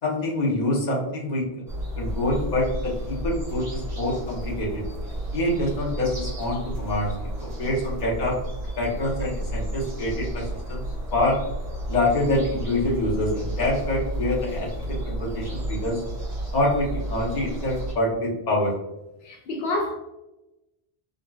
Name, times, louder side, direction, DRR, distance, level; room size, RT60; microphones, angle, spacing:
voice 1, 0.0-1.4 2.0-4.8 5.3-8.4 8.8-10.8 11.1-11.4 11.9-16.0 16.5-18.7, left 1 dB, 45° left, 0.9 m, -26 dB
sound 1, 1.7-17.9, right 1 dB, 90° right, 1.5 m, -32 dB
voice 2, 19.2-19.9, left 2 dB, 80° left, 0.9 m, -28 dB
3.8 x 2.2 x 2.2 m
omnidirectional pair, 1.0 m